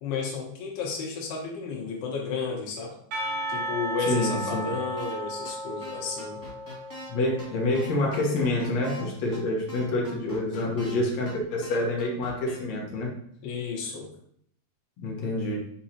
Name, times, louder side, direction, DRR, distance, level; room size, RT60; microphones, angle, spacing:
voice 1, 0.0-3.0 3.5-6.4 13.4-14.1, left 5 dB, 70° left, 0 dB, 3.1 m, -32 dB
Percussion, 3.1-8.0, right 1 dB, 70° right, 1.5 m, -34 dB
voice 2, 4.1-4.7 7.1-13.1 15.0-15.6, left 2 dB, 90° left, -2 dB, 1.4 m, -27 dB
sound 1, 5.0-5.1 5.4-5.5 5.8-7.1 7.4-7.5 7.7-9.0 9.3-9.4 9.7-10.9 11.2-11.3 11.6-12.5, left 1 dB, 15° left, 0.6 m, -43 dB
6.7 x 6.3 x 2.9 m, 0.66 s
omnidirectional pair, 5.1 m